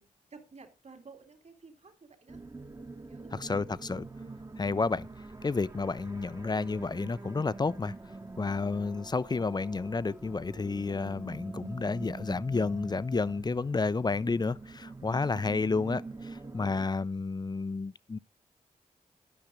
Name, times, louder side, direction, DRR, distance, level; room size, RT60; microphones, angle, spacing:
voice 1, 0.0-2.4 3.1-3.6, right 4 dB, 55° right, 2.7 m, -53 dB
sound 1, 2.3-16.9, right 3 dB, 25° right, 1.0 m, -45 dB
voice 2, 3.3-4.0 4.6-5.1 5.4-7.9 8.4-18.2, left 4 dB, 30° left, 0.5 m, -31 dB
sound 2, 7.5-13.4, equal, 5° right, 0.7 m, -53 dB
12.0 x 5.7 x 5.1 m
cardioid pair, 50°, 14 cm